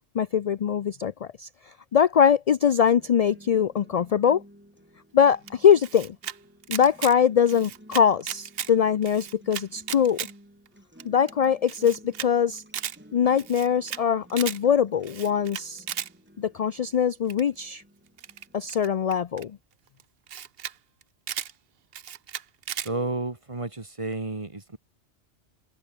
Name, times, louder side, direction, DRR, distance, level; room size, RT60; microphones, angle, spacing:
voice 1, 0.1-4.4 5.1-6.2 6.7-10.2 11.1-12.6 13.1-15.8 16.4-17.8 18.5-19.6, left 8 dB, 55° left, 0.4 m, -22 dB
sound 1, 3.0-19.0, equal, 10° right, 6.1 m, -54 dB
Camera, 5.5-6.4 6.6-7.1 7.5-8.7 9.0-10.3 10.7-10.8 11.0-11.1 11.3-11.4 11.7-12.3 12.6-13.0 13.4-14.0 14.3-14.6 15.0-16.1 17.3-17.6 18.2-19.4 20.0-20.1 20.3-20.7 21.0-21.5 21.9-22.9, right 9 dB, 65° right, 1.0 m, -35 dB
voice 2, 22.8-24.8, right 2 dB, 30° right, 1.8 m, -31 dB
omnidirectional pair, 1.1 m